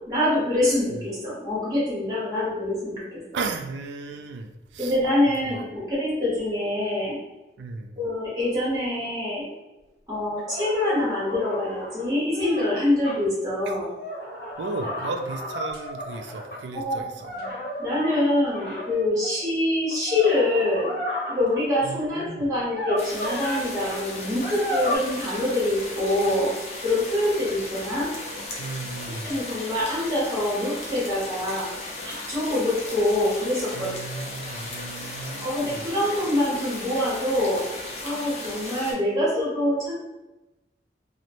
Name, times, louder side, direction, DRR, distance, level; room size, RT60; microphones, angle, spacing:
voice 1, 0.1-3.2 4.8-7.2 8.0-9.5 10.1-13.9 16.7-17.0 17.3-17.5 17.8-20.9 21.3-26.5 26.8-28.1 29.2-31.7 32.0-34.2 35.4-37.6 38.0-39.9, left 1 dB, 20° right, -7 dB, 1.1 m, -25 dB
voice 2, 3.3-5.0 5.4-5.6 7.6-8.0 13.7-13.8 14.6-17.3 21.8-22.5 28.6-29.4 33.7-35.9, right 3 dB, 85° right, 6 dB, 0.3 m, -35 dB
sound 1, 10.5-13.2 13.9-16.6 17.2-19.3 19.9-21.6 22.6-23.6 23.9-24.0 24.4-25.0, left 1 dB, 60° left, 0.9 m, -33 dB
sound 2, 23.0-38.9, left 2 dB, 35° left, 0.5 m, -36 dB
2.9 x 2.1 x 2.5 m, 1.0 s
head